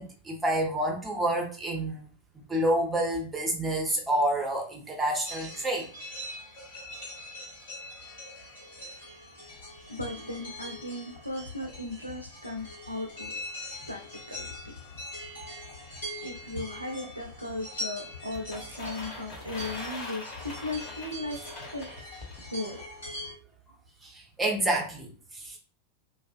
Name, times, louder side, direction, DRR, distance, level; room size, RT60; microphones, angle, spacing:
voice 1, 0.0-2.0 2.5-5.9 24.0-25.6, right 1 dB, 10° right, 0 dB, 0.7 m, -28 dB
sound 1, 5.2-23.3, left 1 dB, 65° left, 1.2 m, -42 dB
voice 2, 9.9-13.3 13.9-14.0 14.3-14.8 16.2-21.4 21.7-21.9 22.5-22.8, left 2 dB, 90° right, 2 dB, 0.4 m, -37 dB
sound 2, 18.3-22.4, left 2 dB, 30° left, 1.0 m, -42 dB
2.4 x 2.3 x 2.4 m, 0.42 s
figure-of-eight pair, 90°, 0 cm